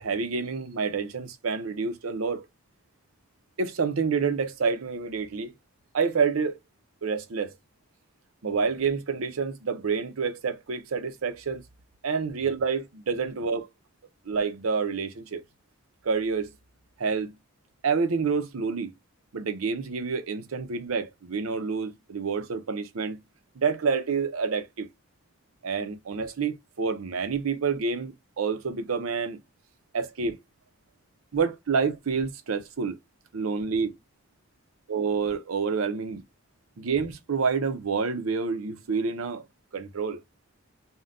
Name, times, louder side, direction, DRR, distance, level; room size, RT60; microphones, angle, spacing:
voice 1, 0.0-2.5 3.6-5.5 5.9-6.6 7.0-7.5 8.4-11.6 12.0-13.7 14.3-15.4 16.0-16.5 17.0-17.3 17.8-18.9 19.3-23.2 23.6-24.9 25.6-29.4 29.9-30.3 31.3-33.0 33.3-34.0 34.9-36.2 36.8-39.4 39.7-40.2, right 5 dB, 90° right, 0.6 m, -28 dB
3.6 x 2.2 x 2.4 m
head